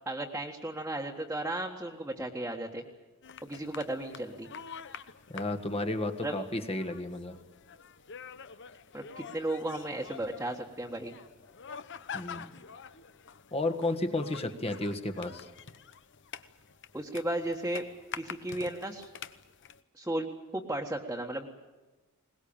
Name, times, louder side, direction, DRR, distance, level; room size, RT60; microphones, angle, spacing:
voice 1, 0.1-2.8 3.4-4.5 6.2-6.3 8.9-11.1 16.9-17.8 18.2-19.1 20.0-20.3 20.5-21.5, right 1 dB, 10° right, -1 dB, 1.6 m, -34 dB
sound 1, 3.2-19.8, left 7 dB, 55° left, 1.0 m, -47 dB
voice 2, 5.3-7.4 12.1-12.5 13.5-15.5, left 2 dB, 25° left, 8 dB, 1.6 m, -32 dB
22.0 x 20.0 x 8.8 m, 1.2 s
head